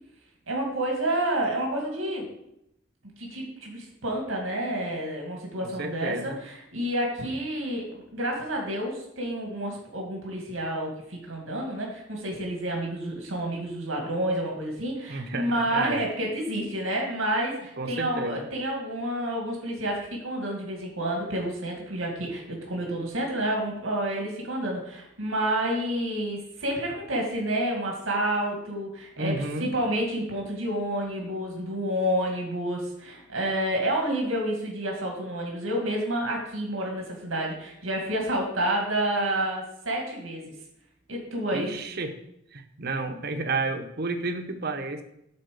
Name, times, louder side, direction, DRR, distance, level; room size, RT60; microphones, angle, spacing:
voice 1, 0.5-2.3 3.2-29.3 29.6-40.5 41.1-41.7, right 1 dB, 90° right, 0 dB, 2.2 m, -29 dB
voice 2, 5.6-6.4 15.1-16.0 17.8-18.5 29.2-29.7 41.5-42.2 42.5-45.0, right 3 dB, 50° right, 6 dB, 0.9 m, -31 dB
8.6 x 4.3 x 6.8 m, 0.79 s
head